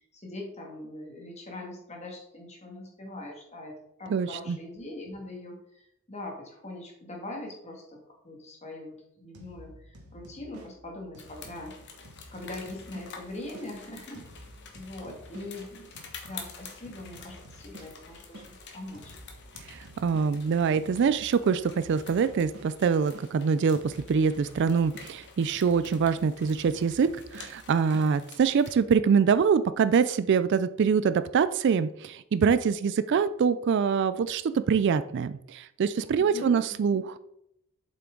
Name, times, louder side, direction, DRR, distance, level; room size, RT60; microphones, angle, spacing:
voice 1, 0.1-8.0 8.2-11.7 12.3-14.2 14.7-15.9 16.2-19.2 36.2-37.0, left 1 dB, 30° left, 1 dB, 1.8 m, -42 dB
voice 2, 4.1-4.6 19.6-37.2, right 6 dB, 50° right, 14 dB, 0.3 m, -25 dB
sound 1, 9.3-13.7 14.1-18.5 18.9-23.3 23.7-28.1, equal, 80° right, 1.5 m, -51 dB
sound 2, 11.2-28.8, left 5 dB, 50° left, 1.3 m, -49 dB
7.6 x 5.8 x 3.7 m, 0.77 s
head